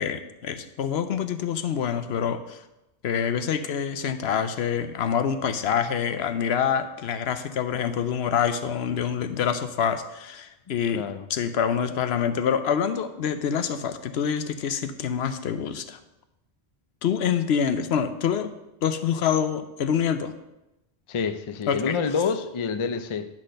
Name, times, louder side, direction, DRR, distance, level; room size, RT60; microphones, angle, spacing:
voice 1, 0.0-2.6 3.0-11.0 11.3-16.0 17.0-18.5 18.8-20.3 21.7-22.0, left 8 dB, 75° left, 10 dB, 0.9 m, -26 dB
voice 2, 10.9-11.3 21.1-23.3, left 5 dB, 40° left, 9 dB, 0.4 m, -27 dB
10.5 x 4.2 x 6.3 m, 0.94 s
omnidirectional pair, 1.1 m